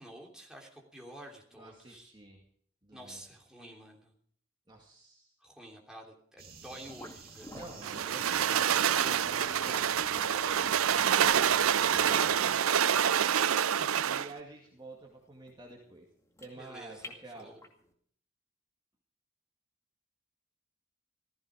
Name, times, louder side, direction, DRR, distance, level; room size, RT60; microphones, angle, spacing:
voice 1, 0.0-2.1 2.9-4.1 5.4-7.5 13.8-14.1 16.5-17.6, right 1 dB, 5° right, -1 dB, 3.1 m, -50 dB
voice 2, 1.5-2.4 2.8-3.2 4.7-5.3 7.5-13.4 14.1-16.1 16.4-17.5, right 2 dB, 20° right, -1 dB, 2.1 m, -49 dB
sound 1, 6.4-12.5, right 5 dB, 45° right, 2.7 m, -51 dB
sound 2, 6.9-17.8, left 1 dB, 15° left, 2.2 m, -50 dB
sound 3, 7.8-14.3, right 9 dB, 85° right, 0.5 m, -27 dB
15.5 x 15.0 x 4.9 m, 0.62 s
head